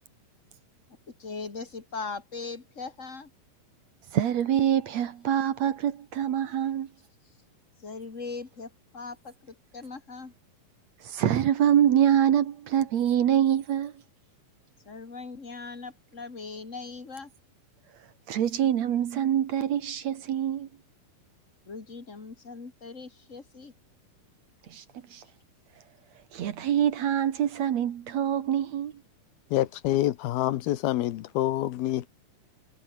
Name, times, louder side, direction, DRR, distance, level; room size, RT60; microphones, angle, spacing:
voice 1, 1.2-3.3 7.8-10.3 14.9-17.3 21.6-23.7, left 4 dB, 25° left, 2.5 m, -40 dB
voice 2, 4.1-6.9 11.0-14.0 17.9-20.7 24.7-24.8 25.1-25.2 26.3-29.0, right 10 dB, 60° right, 2.2 m, -25 dB
voice 3, 29.5-32.1, left 15 dB, 85° left, 3.1 m, -27 dB
omnidirectional pair, 4.3 m